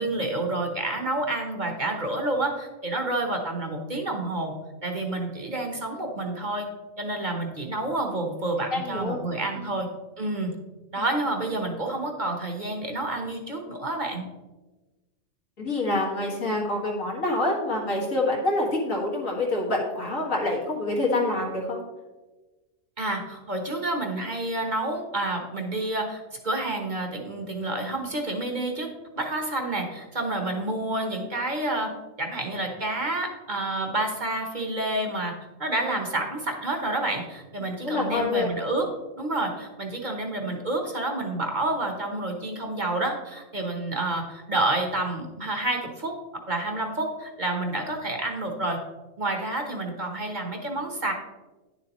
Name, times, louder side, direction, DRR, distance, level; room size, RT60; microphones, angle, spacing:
voice 1, 0.0-4.5 4.8-6.7 7.0-9.9 10.2-10.5 10.9-14.2 23.0-28.9 29.1-31.9 32.2-38.9 39.2-46.2 46.5-48.8 49.2-51.1, right 2 dB, 40° right, 2 dB, 1.1 m, -29 dB
voice 2, 8.7-9.2 9.5-9.8 11.0-11.1 15.6-21.8 35.8-36.0 37.8-38.5, left 2 dB, 85° left, -2 dB, 2.3 m, -26 dB
10.5 x 7.0 x 3.0 m, 1.2 s
omnidirectional pair, 1.3 m